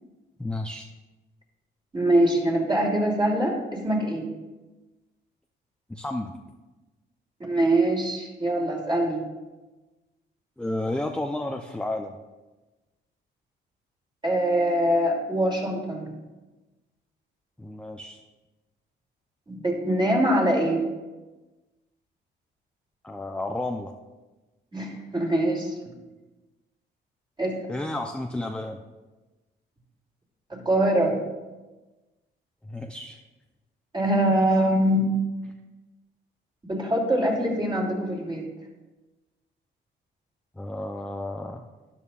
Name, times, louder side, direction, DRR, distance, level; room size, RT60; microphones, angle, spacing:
voice 1, 0.4-0.9 5.9-6.3 10.6-12.2 17.6-18.2 23.0-23.9 27.7-28.8 32.6-33.2 40.6-41.6, left 2 dB, 5° left, 3 dB, 0.6 m, -32 dB
voice 2, 1.9-4.3 7.4-9.2 14.2-16.1 19.5-20.9 24.7-25.7 27.4-27.6 30.5-31.1 33.9-35.1 36.7-38.5, right 1 dB, 25° right, -2 dB, 2.8 m, -23 dB
12.5 x 10.5 x 2.4 m, 1.2 s
cardioid pair, 90°, 20 cm